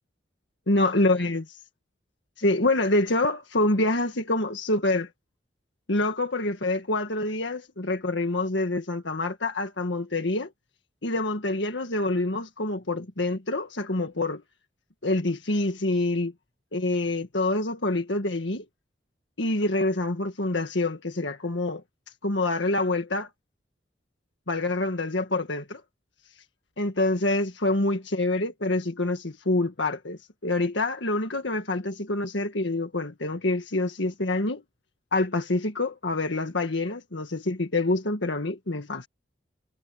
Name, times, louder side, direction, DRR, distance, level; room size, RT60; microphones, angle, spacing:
voice 1, 0.7-1.5 2.4-5.1 5.9-10.5 11.0-14.4 15.0-16.3 16.7-18.6 19.4-21.8 22.2-23.3 24.5-25.8 26.8-34.6 35.1-39.1, left 2 dB, 70° left, 1.8 m, -26 dB
head